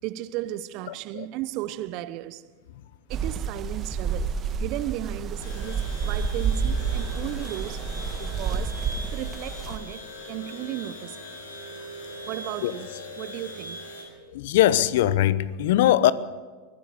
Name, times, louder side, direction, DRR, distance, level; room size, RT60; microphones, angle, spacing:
voice 1, 0.0-2.5 3.1-7.9 8.2-11.2 12.3-12.9 13.2-13.8, right 15 dB, 50° right, 0.8 m, -35 dB
sound 1, 3.1-9.8, right 5 dB, 35° right, 1.7 m, -29 dB
sound 2, 5.4-14.0, left 1 dB, 80° left, 5.4 m, -40 dB
voice 2, 14.3-16.1, left 13 dB, 65° left, 0.9 m, -20 dB
24.0 x 15.5 x 6.9 m
hypercardioid pair, 90°, 0 cm